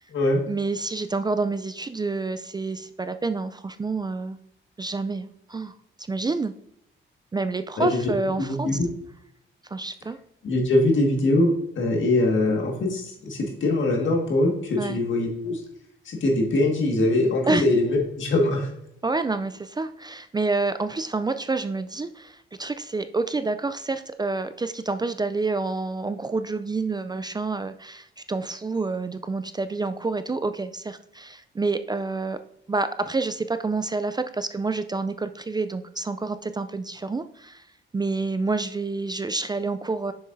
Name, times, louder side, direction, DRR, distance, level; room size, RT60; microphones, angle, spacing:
voice 1, 0.5-4.4 4.8-5.7 6.1-6.5 7.3-8.7 9.7-10.2 14.8-15.0 17.5-17.6 19.0-32.4 32.7-37.7 37.9-40.1, right 3 dB, 20° right, 11 dB, 0.3 m, -28 dB
voice 2, 8.4-8.9 10.4-15.6 16.1-18.7, left 2 dB, 70° left, 1 dB, 1.8 m, -22 dB
6.8 x 6.3 x 2.6 m, 0.75 s
cardioid pair, 80°, 20 cm